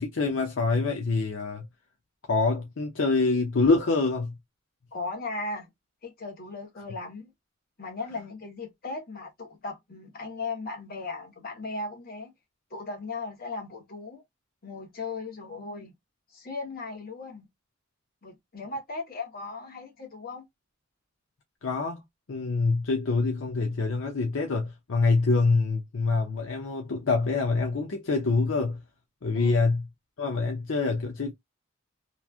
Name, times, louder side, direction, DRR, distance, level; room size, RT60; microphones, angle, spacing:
voice 1, 0.0-1.7 2.3-4.4 21.6-22.0 22.3-28.8 29.2-29.8 30.2-31.3, left 3 dB, 70° left, 0.6 m, -25 dB
voice 2, 4.9-5.7 6.0-7.3 7.8-12.3 12.7-14.2 14.6-15.9 16.3-17.5 18.2-20.4 29.3-29.6, left 3 dB, 50° left, 1.2 m, -37 dB
3.1 x 2.3 x 2.4 m
head